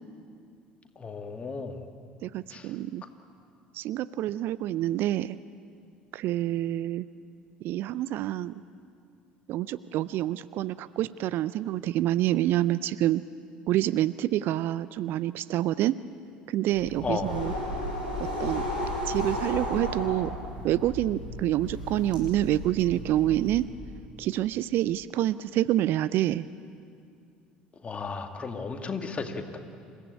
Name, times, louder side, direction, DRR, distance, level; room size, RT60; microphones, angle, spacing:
voice 1, 1.0-1.8 2.5-2.7 17.0-17.4 27.8-29.6, left 4 dB, 30° left, 5 dB, 2.2 m, -34 dB
voice 2, 2.2-3.0 3.7-5.4 6.1-7.1 7.6-8.5 9.5-13.2 13.7-16.0 16.5-17.5 18.2-18.6 19.1-20.4 20.6-23.7 24.2-26.5, right 14 dB, 50° right, 18 dB, 0.5 m, -27 dB
sound 1, 16.7-23.5, left 1 dB, 85° right, 5.9 m, -34 dB
27.5 x 16.0 x 8.6 m, 2.4 s
figure-of-eight pair, 60°, 5 cm